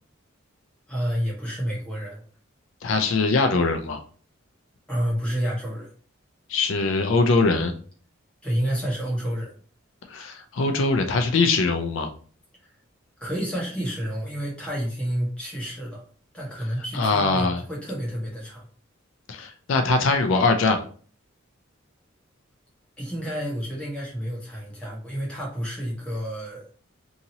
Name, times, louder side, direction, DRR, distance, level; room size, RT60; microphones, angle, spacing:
voice 1, 0.9-2.2 4.9-5.9 8.4-9.5 12.6-12.7 13.2-16.0 16.3-18.7 23.0-26.7, equal, 5° left, -4 dB, 0.9 m, -29 dB
voice 2, 2.8-4.0 6.5-7.7 10.1-12.1 16.9-17.6 19.3-20.8, left 3 dB, 70° left, 6 dB, 0.4 m, -22 dB
2.8 x 2.7 x 2.7 m, 0.43 s
head